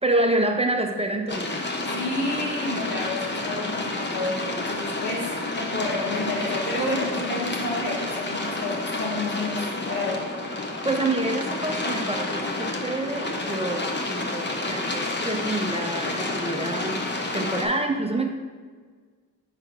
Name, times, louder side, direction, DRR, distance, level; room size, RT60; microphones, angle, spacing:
voice 1, 0.0-1.6 10.8-17.0 17.3-18.3, right 2 dB, 15° right, 3 dB, 0.7 m, -27 dB
sound 1, 1.3-17.6, left 2 dB, 25° left, 0.9 m, -30 dB
voice 2, 1.9-10.3, left 2 dB, 85° left, -5 dB, 1.8 m, -30 dB
4.8 x 4.4 x 4.9 m, 1.5 s
supercardioid pair, 45°, 40 cm